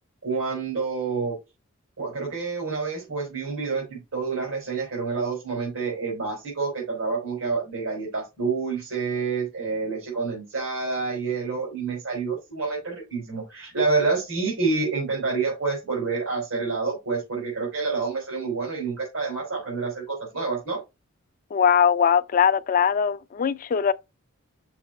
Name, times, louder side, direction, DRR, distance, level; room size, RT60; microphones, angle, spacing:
voice 1, 0.2-1.4 2.0-20.8, right 4 dB, 85° right, 3.8 m, -28 dB
voice 2, 21.5-23.9, left 7 dB, 40° left, 0.4 m, -21 dB
6.0 x 5.0 x 4.2 m
head